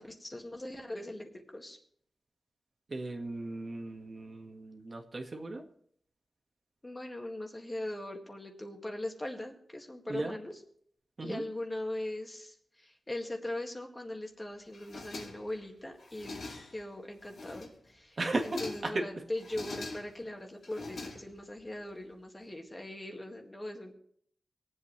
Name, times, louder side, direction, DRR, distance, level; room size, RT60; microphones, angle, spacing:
voice 1, 0.0-1.8 6.8-10.6 11.2-16.4 16.7-23.9, left 1 dB, 25° left, 2 dB, 1.9 m, -40 dB
voice 2, 2.9-5.6 10.1-10.3 11.2-11.4 18.2-18.4 18.9-19.0, right 2 dB, 50° right, 2 dB, 1.7 m, -36 dB
sound 1, 14.7-15.6 16.0-16.9 17.2-17.9 18.2-19.0 19.4-20.3 20.6-21.6, left 3 dB, 85° left, 2.6 m, -43 dB
24.0 x 8.1 x 3.3 m, 0.65 s
wide cardioid pair, 75°, 0 cm